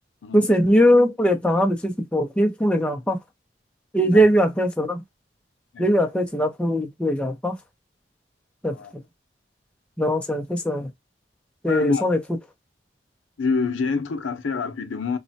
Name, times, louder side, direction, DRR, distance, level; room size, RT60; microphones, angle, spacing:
voice 1, 0.3-3.2 3.9-5.0 5.8-7.5 8.6-8.7 10.0-10.9 11.6-12.2, equal, 5° left, 0.5 m, -20 dB
voice 2, 11.7-12.1 13.4-15.2, left 4 dB, 90° left, 0.5 m, -26 dB
3.1 x 2.1 x 2.6 m
head